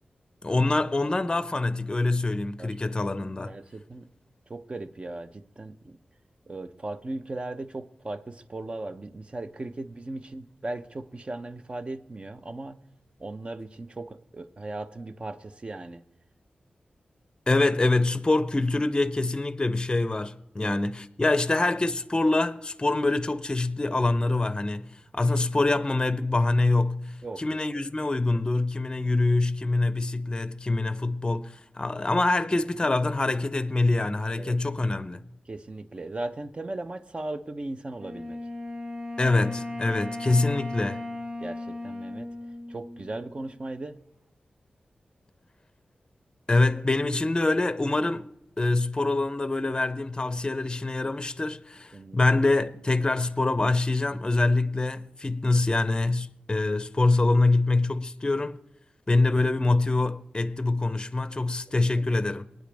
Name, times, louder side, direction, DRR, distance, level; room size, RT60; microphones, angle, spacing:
voice 1, 0.4-3.6 17.5-35.2 39.2-41.0 46.5-48.3 48.6-58.6 59.1-62.4, left 2 dB, 25° left, 0.6 m, -25 dB
voice 2, 3.5-4.1 4.5-6.0 6.5-12.8 13.2-16.0 20.6-20.8 21.2-21.4 27.2-27.6 34.4-34.6 35.5-38.4 39.9-40.0 41.4-42.3 42.7-44.0 51.9-52.3 61.7-62.2, right 2 dB, 35° right, 0.9 m, -37 dB
Wind instrument woodwind instrument, 38.0-43.4, left 2 dB, 55° right, 3.5 m, -37 dB
25.0 x 9.3 x 3.5 m
wide cardioid pair, 70°, 3 cm